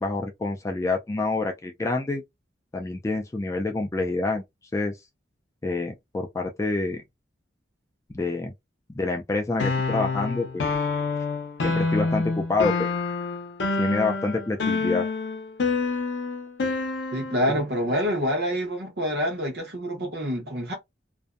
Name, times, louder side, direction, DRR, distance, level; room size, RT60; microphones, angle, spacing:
voice 1, 0.0-2.2 2.7-4.4 4.7-5.0 5.6-7.0 8.1-8.5 8.9-10.6 11.6-12.9 13.8-15.0, left 3 dB, 15° left, 0.3 m, -27 dB
sound 1, 9.6-17.5, left 4 dB, 75° left, 0.6 m, -27 dB
voice 2, 17.1-20.7, equal, 60° right, 0.8 m, -27 dB
2.5 x 2.1 x 2.3 m
head